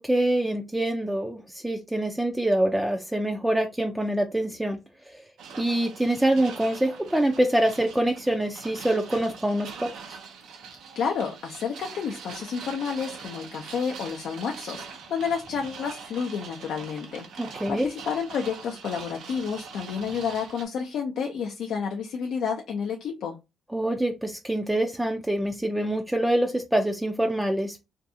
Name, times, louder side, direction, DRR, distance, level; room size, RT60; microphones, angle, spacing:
voice 1, 0.0-4.8 5.1-5.2 5.6-9.9 17.4-17.9 23.7-27.9, right 1 dB, 5° right, 3 dB, 0.4 m, -25 dB
sound 1, 5.4-20.6, right 5 dB, 80° right, 0.6 m, -43 dB
voice 2, 11.0-17.3 17.7-23.4, left 6 dB, 70° left, 1 dB, 0.4 m, -30 dB
2.6 x 2.3 x 2.6 m, 0.24 s
cardioid pair, 90°, 0 cm